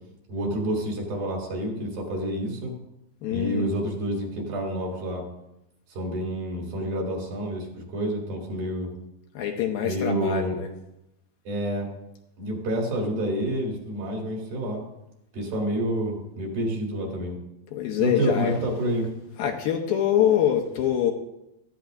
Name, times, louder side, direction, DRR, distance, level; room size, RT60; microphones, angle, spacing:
voice 1, 0.3-2.7 3.3-5.3 5.9-8.9 9.8-10.6 11.5-11.9 12.4-14.8 15.3-17.4 18.0-19.1, right 1 dB, 65° right, -1 dB, 4.5 m, -28 dB
voice 2, 3.2-3.6 9.3-10.7 17.7-18.6 19.4-21.1, left 10 dB, 75° left, 2 dB, 2.5 m, -24 dB
16.5 x 14.0 x 2.6 m, 0.86 s
omnidirectional pair, 4.6 m